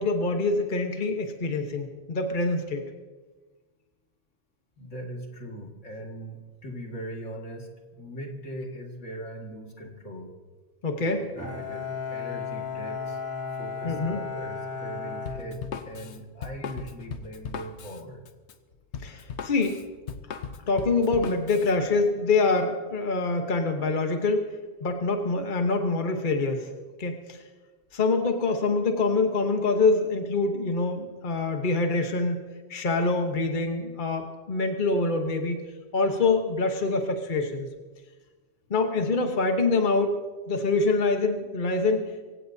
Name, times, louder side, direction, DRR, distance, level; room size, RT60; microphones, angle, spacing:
voice 1, 0.0-2.8 10.8-11.3 13.8-14.2 19.0-19.8 20.7-24.4 24.8-26.7 27.0-27.4 27.9-32.4 32.7-35.6 35.9-37.7 38.7-40.2 40.5-42.2, left 3 dB, 45° left, 4 dB, 1.3 m, -25 dB
voice 2, 4.8-10.3 11.1-11.2 11.6-13.2 13.5-18.2, right 1 dB, 85° left, 1 dB, 2.5 m, -40 dB
Bowed string instrument, 11.4-16.2, left 5 dB, 15° left, 3.7 m, -35 dB
Drum kit, 15.3-21.7, left 6 dB, 70° left, 1.1 m, -38 dB
24.0 x 16.5 x 2.8 m, 1.3 s
omnidirectional pair, 1.2 m